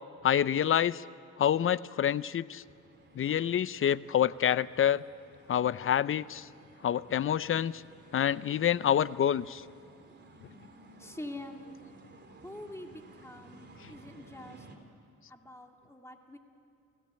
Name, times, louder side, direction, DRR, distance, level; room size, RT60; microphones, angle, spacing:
voice 1, 0.2-1.0 1.4-2.6 3.2-5.0 5.5-6.5 6.8-7.8 8.1-9.6, left 9 dB, 45° left, 18 dB, 0.6 m, -27 dB
sound 1, 2.6-14.8, right 2 dB, 35° right, 3.3 m, -56 dB
voice 2, 11.0-11.8 12.4-14.7 15.3-16.4, left 1 dB, 10° left, 3 dB, 2.5 m, -45 dB
30.0 x 16.5 x 8.9 m, 2.7 s
cardioid pair, 90°, 30 cm